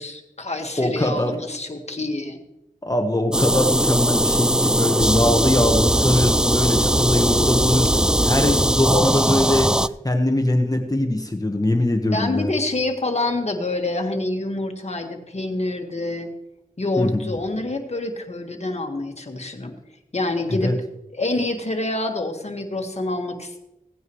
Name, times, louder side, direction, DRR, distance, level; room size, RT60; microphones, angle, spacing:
voice 1, 0.0-2.4 8.9-9.5 12.1-16.3 16.8-19.7 20.1-20.7 21.1-23.6, left 2 dB, 50° left, 4 dB, 1.7 m, -27 dB
voice 2, 0.8-1.4 2.8-9.7 10.0-12.5 17.0-17.3 20.5-20.7, left 1 dB, 25° left, 5 dB, 1.3 m, -22 dB
sound 1, 3.3-9.9, right 1 dB, 5° right, 0.3 m, -20 dB
17.0 x 9.3 x 3.2 m, 0.90 s
wide cardioid pair, 50°, 14 cm